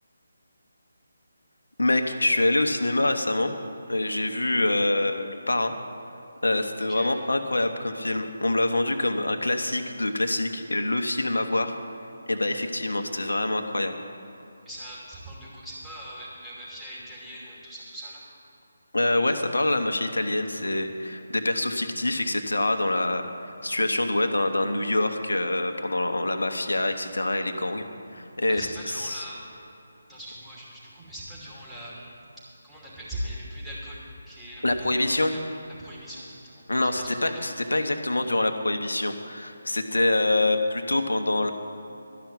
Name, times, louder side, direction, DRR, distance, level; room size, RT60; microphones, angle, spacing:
voice 1, 1.8-3.5 3.9-5.7 6.4-11.8 12.3-13.9 18.9-27.9 28.1-29.2 34.6-35.3 36.7-41.5, left 2 dB, 80° left, 6 dB, 1.0 m, -25 dB
voice 2, 14.6-18.2 28.5-29.4 30.1-32.2 32.6-34.0 34.3-35.4 35.8-36.6 37.0-37.4, equal, 5° right, -9 dB, 2.8 m, -40 dB
12.5 x 6.0 x 9.4 m, 2.9 s
figure-of-eight pair, 155°, 0 cm